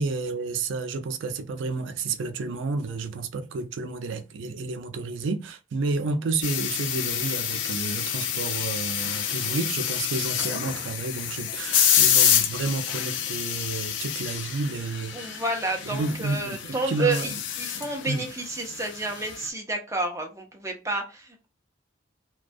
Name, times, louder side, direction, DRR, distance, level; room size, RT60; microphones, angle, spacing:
voice 1, 0.0-15.4 15.8-17.4 18.1-18.2, right 3 dB, 80° right, 0.4 m, -31 dB
sound 1, 6.4-19.5, left 9 dB, 75° left, 0.4 m, -27 dB
voice 2, 15.1-21.5, right 2 dB, 15° right, 0.5 m, -30 dB
2.3 x 2.2 x 2.5 m
head